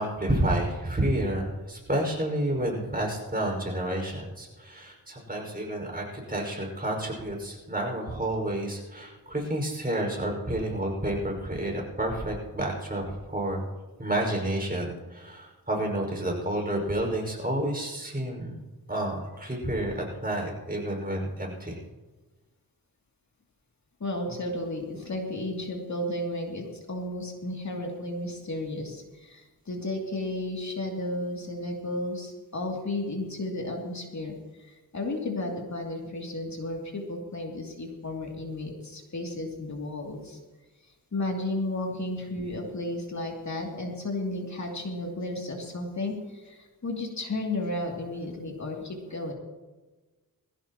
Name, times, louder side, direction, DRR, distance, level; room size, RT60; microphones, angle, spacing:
voice 1, 0.0-13.6 14.0-18.6 18.9-21.8, right 1 dB, 25° right, 0 dB, 5.5 m, -30 dB
voice 2, 24.0-34.3 34.9-40.4 41.1-49.3, left 1 dB, 50° left, 0 dB, 2.8 m, -33 dB
21.0 x 16.0 x 3.0 m, 1.2 s
wide cardioid pair, 85°, 36 cm